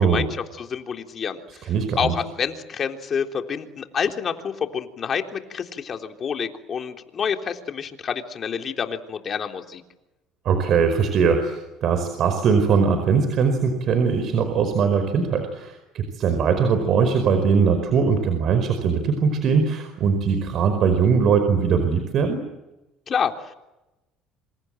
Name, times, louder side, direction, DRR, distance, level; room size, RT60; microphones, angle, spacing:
voice 1, 0.0-1.7 2.0-9.8 23.1-23.6, left 7 dB, 40° left, 4 dB, 3.5 m, -28 dB
voice 2, 1.6-2.1 10.4-22.4, right 6 dB, 55° right, 8 dB, 4.9 m, -21 dB
27.5 x 26.5 x 7.9 m, 0.99 s
supercardioid pair, 90°, 0 cm